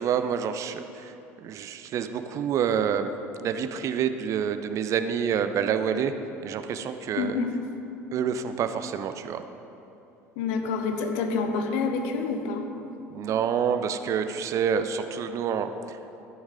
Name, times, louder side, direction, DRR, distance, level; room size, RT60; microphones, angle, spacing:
voice 1, 0.0-3.1 3.4-6.1 6.4-7.4 8.1-9.4 13.1-16.0, right 7 dB, 40° right, 9 dB, 0.6 m, -28 dB
voice 2, 7.2-7.5 10.4-12.6, left 4 dB, 60° left, 5 dB, 1.0 m, -27 dB
14.0 x 6.3 x 5.0 m, 2.8 s
figure-of-eight pair, 65°, 8 cm